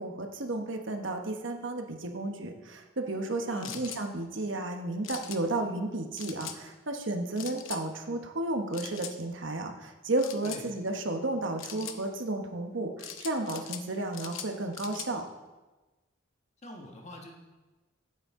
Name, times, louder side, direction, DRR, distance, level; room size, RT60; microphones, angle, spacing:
voice 1, 0.0-15.2, right 2 dB, 70° right, 4 dB, 1.1 m, -33 dB
voice 2, 3.5-3.8 10.4-10.7 16.6-17.3, left 1 dB, 35° left, 1 dB, 1.4 m, -45 dB
sound 1, 3.6-4.0 5.0-5.4 6.2-6.6 7.4-7.8 8.7-9.1 10.2-10.6 11.6-12.0 13.0-13.8 14.1-15.1, left 9 dB, 80° left, 0.8 m, -41 dB
14.5 x 8.0 x 3.7 m, 1.2 s
head